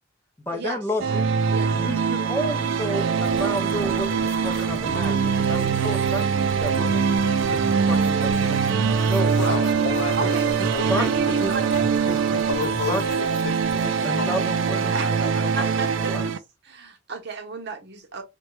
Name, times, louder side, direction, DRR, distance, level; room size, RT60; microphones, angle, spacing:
voice 1, 0.4-1.2 1.7-7.1 7.4-8.6 9.0-9.6 10.2-10.3 10.6-11.1 11.4-11.5 12.0-12.5 12.9-13.0 14.0-16.3, equal, 10° left, 0.5 m, -31 dB
sound 1, 1.0-16.4, right 6 dB, 80° right, 0.4 m, -23 dB
voice 2, 1.5-2.1 9.4-9.6 10.2-10.5 10.8-11.8 14.9-16.2 16.6-18.2, right 3 dB, 60° right, 0.8 m, -33 dB
sound 2, 3.2-13.9, left 1 dB, 40° left, 0.8 m, -39 dB
sound 3, 6.6-16.2, equal, 70° left, 0.9 m, -39 dB
voice 3, 9.4-11.4 12.5-14.3 15.0-15.1, left 5 dB, 85° left, 0.4 m, -32 dB
3.0 x 2.2 x 3.1 m
head